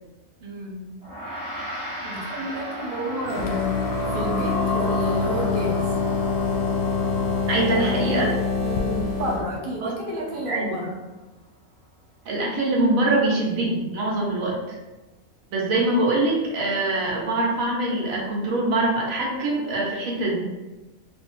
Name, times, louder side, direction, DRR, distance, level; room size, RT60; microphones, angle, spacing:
voice 1, 0.4-0.9 2.0-5.9 8.6-11.0, right 1 dB, 50° right, -2 dB, 0.7 m, -31 dB
Gong, 1.0-10.6, equal, 20° right, 1.1 m, -39 dB
sound 1, 2.5-9.9, left 4 dB, 90° left, 1.0 m, -32 dB
sound 2, 3.3-9.5, left 4 dB, 65° left, 0.8 m, -26 dB
voice 2, 7.5-8.3 9.8-9.9 10.5-10.8 12.2-14.8 15.5-20.5, right 2 dB, 75° right, -3 dB, 1.2 m, -23 dB
2.7 x 2.5 x 3.6 m, 1.1 s
omnidirectional pair, 1.5 m